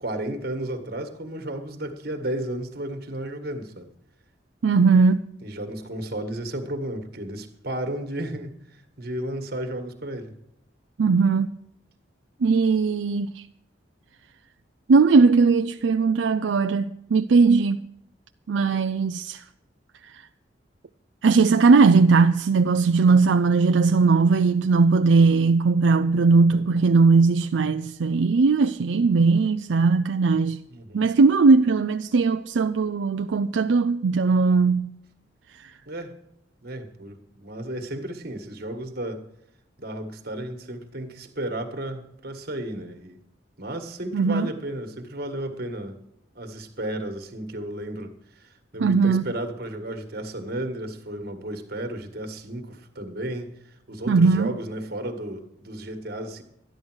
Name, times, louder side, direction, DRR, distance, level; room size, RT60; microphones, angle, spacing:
voice 1, 0.0-3.9 5.4-10.3 30.7-31.1 35.9-36.1 36.6-39.2 39.8-43.2 43.6-46.0 46.3-56.4, right 1 dB, 55° right, 1.7 m, -33 dB
voice 2, 4.6-5.3 11.0-11.6 12.4-13.4 14.9-17.8 18.5-19.4 21.2-30.6 30.9-34.9 44.1-44.5 48.8-49.2 54.1-54.5, right 4 dB, 85° right, 0.4 m, -19 dB
13.0 x 10.5 x 6.2 m
head